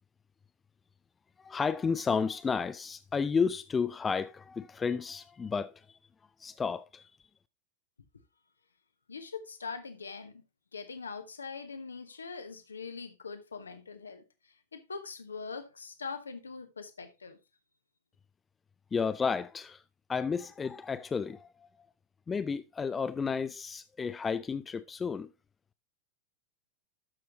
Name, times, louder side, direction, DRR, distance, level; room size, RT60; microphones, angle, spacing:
voice 1, 1.4-5.7 6.4-7.1 18.9-19.8 20.1-21.7 22.3-25.3, left 5 dB, 15° left, 0.5 m, -32 dB
voice 2, 9.1-10.4 10.7-17.4, left 5 dB, 75° left, 1.2 m, -42 dB
12.0 x 6.2 x 3.0 m
figure-of-eight pair, 90°, 0 cm